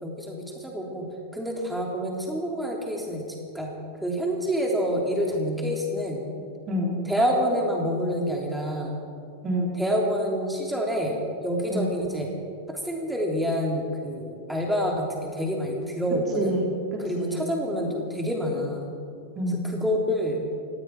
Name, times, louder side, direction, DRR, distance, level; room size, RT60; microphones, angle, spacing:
voice 1, 0.0-1.1 1.3-3.7 4.0-6.2 7.1-9.0 9.8-11.2 11.4-12.3 12.7-16.5 17.0-18.9 19.5-20.4, equal, 5° right, -1 dB, 3.4 m, -27 dB
voice 2, 6.7-7.0 9.4-9.8 11.7-11.9 16.4-17.4 19.4-19.7, equal, 25° right, -2 dB, 3.5 m, -28 dB
18.5 x 15.5 x 4.9 m, 2.3 s
figure-of-eight pair, 90°, 0 cm